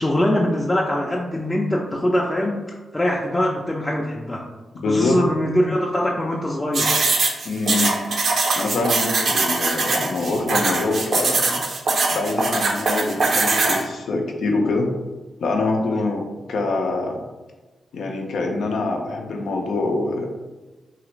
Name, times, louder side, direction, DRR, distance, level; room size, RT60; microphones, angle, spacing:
voice 1, 0.0-4.4 4.9-6.9 15.9-16.0, left 1 dB, 20° left, -2 dB, 0.4 m, -23 dB
voice 2, 4.8-5.2 7.4-8.0 8.6-11.6 12.1-14.9 15.4-16.2 16.5-17.2 17.9-20.3, left 3 dB, 80° left, 2 dB, 0.5 m, -24 dB
sound 1, 6.7-13.8, right 3 dB, 65° right, 0.5 m, -21 dB
3.0 x 2.4 x 3.1 m, 1.2 s
supercardioid pair, 45°, 0 cm